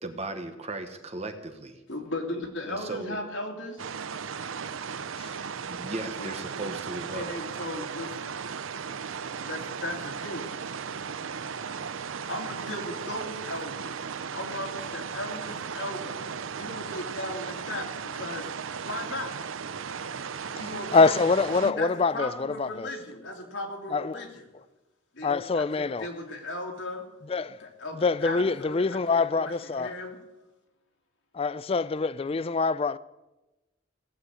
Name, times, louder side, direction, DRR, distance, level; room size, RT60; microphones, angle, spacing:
voice 1, 0.0-1.8 2.7-3.2 5.7-7.3, right 2 dB, 30° right, 1.1 m, -36 dB
voice 2, 1.9-3.8 6.2-6.8 7.1-8.4 9.5-10.5 12.3-13.9 14.3-16.2 16.6-18.5 18.8-19.3 20.6-21.1 21.6-24.4 25.1-27.1 27.6-30.2, left 1 dB, 70° left, 2.7 m, -37 dB
sound 1, 3.8-21.7, right 6 dB, 80° right, 0.7 m, -36 dB
voice 3, 20.9-22.9 23.9-24.3 25.2-26.1 27.3-27.6 27.9-29.9 31.3-33.0, left 4 dB, 30° left, 0.4 m, -25 dB
17.0 x 7.8 x 8.1 m
head